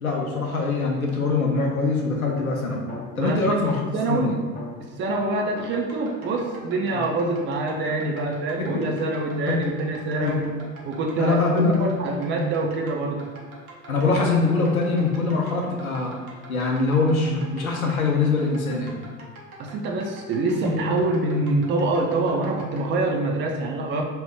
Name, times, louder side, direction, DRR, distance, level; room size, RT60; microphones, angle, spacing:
voice 1, 0.0-2.8 3.2-3.8 4.1-4.3 6.9-7.0 8.6-8.7 9.5-9.6 10.1-10.4 11.2-11.8 13.9-16.1 16.5-18.9, left 3 dB, 90° left, 0 dB, 0.6 m, -23 dB
sound 1, 2.2-4.0 4.5-7.2, left 3 dB, 25° left, 0.6 m, -43 dB
voice 2, 3.1-3.6 3.9-4.4 4.8-10.5 10.9-13.3 19.6-24.0, right 2 dB, 30° right, 1 dB, 0.4 m, -25 dB
sound 2, 5.6-22.9, right 1 dB, 85° right, 0.7 m, -45 dB
2.8 x 2.2 x 3.4 m, 1.5 s
figure-of-eight pair, 70°, 41 cm